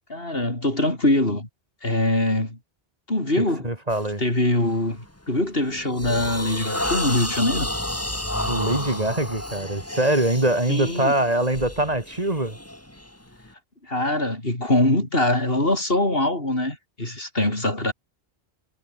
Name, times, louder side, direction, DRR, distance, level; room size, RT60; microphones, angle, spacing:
voice 1, 0.1-1.5 1.8-2.6 3.1-3.7 4.2-7.7 10.7-11.1 13.8-17.9, left 1 dB, 60° left, 5.9 m, -23 dB
voice 2, 3.6-4.2 8.4-12.6, right 1 dB, 35° right, 3.1 m, -23 dB
sound 1, 3.9-4.1 4.6-4.9 5.4-13.5, left 1 dB, 15° left, 2.4 m, -31 dB
omnidirectional pair, 1.1 m